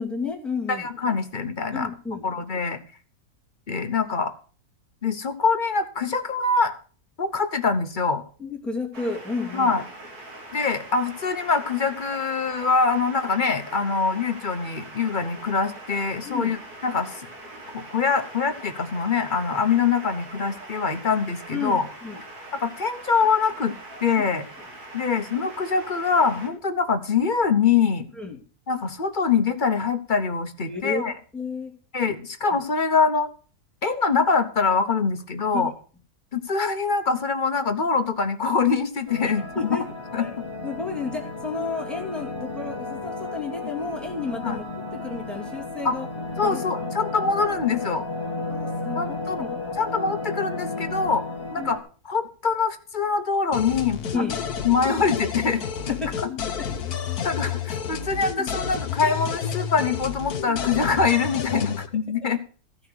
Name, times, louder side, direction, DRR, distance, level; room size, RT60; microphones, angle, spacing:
voice 1, 0.0-0.9 1.7-2.3 8.4-9.7 16.2-16.5 21.5-22.2 24.2-24.3 28.1-28.4 30.7-31.0 31.3-31.7 32.5-32.6 35.5-35.7 39.6-39.8 40.2-40.3 40.6-44.7 45.0-46.1 46.4-46.6 48.5-49.5 51.6-51.7 54.1-54.4 56.0-56.1 56.6-56.7 56.9-57.1 61.6-61.7 62.1-62.2, left 4 dB, ahead, 2 dB, 2.2 m, -31 dB
voice 2, 0.7-1.9 2.2-2.8 3.7-4.3 5.0-6.7 7.2-8.2 9.5-9.8 10.5-17.1 17.7-21.9 22.5-23.7 24.0-24.4 24.9-28.1 28.7-31.1 31.9-33.3 33.8-35.7 36.3-39.8 40.1-40.3 44.4-44.6 45.8-46.0 46.4-48.1 48.9-49.5 49.8-51.2 51.5-54.0 54.6-56.0 57.2-62.4, left 5 dB, 40° left, 8 dB, 0.9 m, -24 dB
sound 1, 8.9-26.5, right 2 dB, 75° right, 2.6 m, -42 dB
sound 2, 39.1-51.8, left 3 dB, 15° left, 1.7 m, -33 dB
sound 3, 53.5-61.9, left 7 dB, 70° left, 1.5 m, -30 dB
14.5 x 6.0 x 6.3 m, 0.40 s
omnidirectional pair, 1.7 m